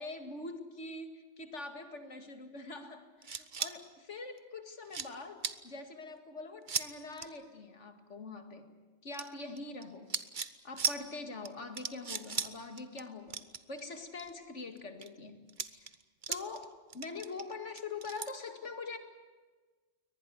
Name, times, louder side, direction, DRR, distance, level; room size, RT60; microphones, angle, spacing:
voice 1, 0.0-8.7 9.0-10.1 10.6-13.4 13.7-15.4 15.7-15.9 16.3-19.0, left 3 dB, 85° left, 8 dB, 2.5 m, -44 dB
sound 1, 3.2-3.7 4.4-4.5 4.8-5.1 5.4-5.6 6.7-6.9 7.1-7.3 9.1-9.8 10.1-10.5 10.8-11.0 11.4-11.5 11.7-12.5 12.8-13.0 13.3-14.3 14.8-15.1 15.5-16.6 16.9-18.3, right 5 dB, 45° right, 1.1 m, -36 dB
23.0 x 19.5 x 9.4 m, 1.4 s
omnidirectional pair, 1.2 m